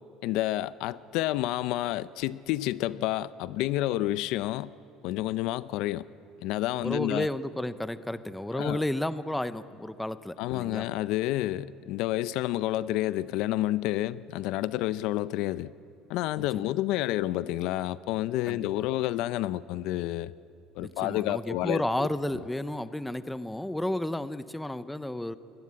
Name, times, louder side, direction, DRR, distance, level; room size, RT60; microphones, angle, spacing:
voice 1, 0.2-4.7 5.0-6.0 6.4-7.3 8.5-8.8 10.4-15.7 16.1-20.3 20.8-22.1, left 15 dB, 65° left, 0.5 m, -29 dB
voice 2, 6.8-10.9 16.5-16.7 18.5-18.7 20.8-25.4, left 1 dB, 5° left, 0.5 m, -32 dB
23.5 x 20.0 x 9.7 m
cardioid pair, 160°, 0 cm